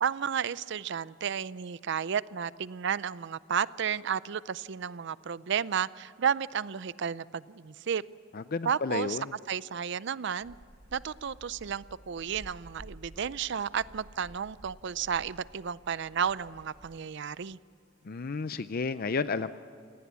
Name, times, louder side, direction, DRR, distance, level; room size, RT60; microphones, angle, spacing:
voice 1, 0.0-8.0 8.6-9.2 9.5-10.5 10.9-17.6, right 7 dB, 65° right, 18 dB, 0.5 m, -32 dB
voice 2, 8.3-9.2 18.0-19.5, left 4 dB, 50° left, 13 dB, 0.5 m, -32 dB
sound 1, 10.4-17.0, equal, 25° right, 2.1 m, -53 dB
27.5 x 18.5 x 8.2 m, 2.4 s
head